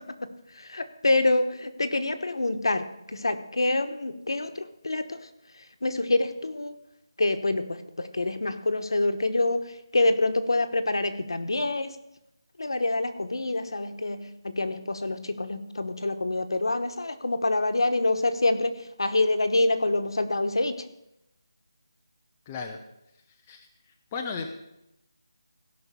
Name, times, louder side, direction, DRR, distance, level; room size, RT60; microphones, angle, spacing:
voice 1, 0.0-5.3 5.8-6.7 7.2-12.0 12.6-20.8, left 2 dB, 70° left, 9 dB, 1.2 m, -26 dB
voice 2, 22.5-22.8 23.5-23.7 24.1-24.5, left 5 dB, 10° left, 2 dB, 0.4 m, -34 dB
16.5 x 5.9 x 6.8 m, 0.86 s
figure-of-eight pair, 180°, 3 cm